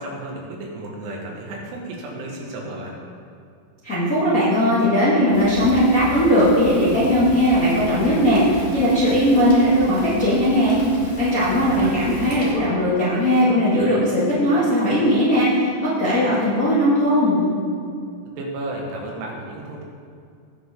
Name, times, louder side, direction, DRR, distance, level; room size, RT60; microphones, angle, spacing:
voice 1, 0.0-2.9 11.5-12.0 18.4-19.9, right 2 dB, 80° right, -1 dB, 4.0 m, -33 dB
voice 2, 3.8-10.8 11.2-17.4, equal, 30° left, -11 dB, 1.5 m, -18 dB
Fire, 5.3-12.5, left 1 dB, 15° left, 1.1 m, -34 dB
18.0 x 6.4 x 3.8 m, 2.3 s
omnidirectional pair, 5.5 m